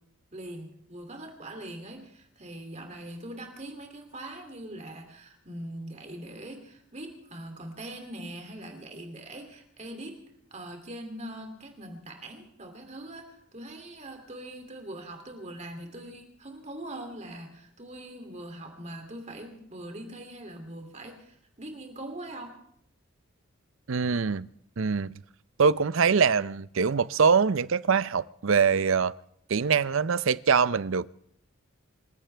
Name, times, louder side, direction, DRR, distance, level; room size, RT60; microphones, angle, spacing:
voice 1, 0.3-10.2 10.5-22.6, right 1 dB, 30° right, 2.8 m, -42 dB
voice 2, 23.9-24.5 24.8-25.1 25.6-29.1 29.5-31.1, right 5 dB, 65° right, 0.5 m, -23 dB
27.0 x 16.0 x 3.4 m
head